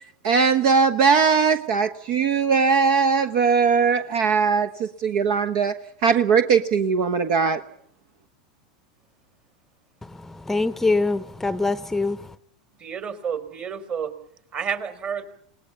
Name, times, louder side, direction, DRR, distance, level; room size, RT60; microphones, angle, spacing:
voice 1, 0.2-5.7 6.0-7.6, right 5 dB, 55° right, 1.3 m, -20 dB
voice 2, 10.0-12.3, left 3 dB, 10° left, 0.9 m, -24 dB
voice 3, 12.8-14.1 14.5-15.3, right 7 dB, 35° right, 3.2 m, -30 dB
29.5 x 19.0 x 6.9 m
hypercardioid pair, 90°, 4 cm